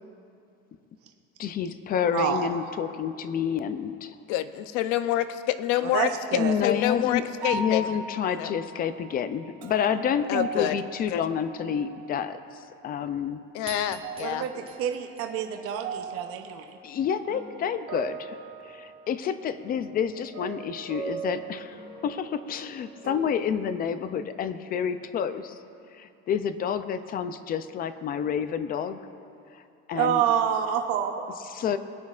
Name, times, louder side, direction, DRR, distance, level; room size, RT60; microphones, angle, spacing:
voice 1, 1.4-4.2 6.4-7.2 7.5-12.4 12.8-13.4 16.8-18.4 18.7-25.6 26.0-29.0 29.9-30.2 31.5-31.8, left 8 dB, 30° left, 12 dB, 0.4 m, -29 dB
voice 2, 2.1-2.5 5.9-6.5 14.2-16.8 29.9-31.2, right 9 dB, 50° right, 5 dB, 0.7 m, -27 dB
voice 3, 4.3-5.2 5.6-6.1 6.6-7.9 8.3-8.5 10.3-10.8 11.1-11.2 13.5-14.5, left 13 dB, 80° left, 11 dB, 0.6 m, -27 dB
sound 1, 6.4-6.8 7.4-12.2 12.6-13.4 13.8-23.5, right 4 dB, 65° right, 1.6 m, -40 dB
sound 2, 13.7-16.2, right 6 dB, 20° right, 0.8 m, -46 dB
22.0 x 9.4 x 2.4 m, 2.6 s
cardioid pair, 165°, 29 cm